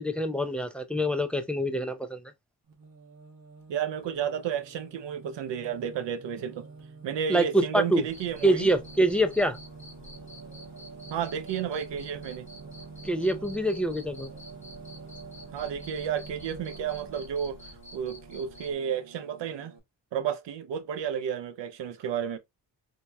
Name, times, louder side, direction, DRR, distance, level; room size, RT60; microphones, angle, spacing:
voice 1, 0.0-2.2 7.3-8.0 8.4-9.6 13.0-14.3, right 1 dB, 5° left, 0.4 m, -25 dB
Singing, 2.7-19.8, right 4 dB, 50° right, 1.2 m, -47 dB
voice 2, 3.7-6.7 7.0-8.7 11.1-12.5 15.5-17.6 17.9-19.7 20.1-22.4, right 8 dB, 75° right, 0.6 m, -32 dB
Cricket, 8.1-18.7, left 2 dB, 25° left, 1.4 m, -49 dB
4.3 x 2.7 x 2.2 m
cardioid pair, 100°, 43 cm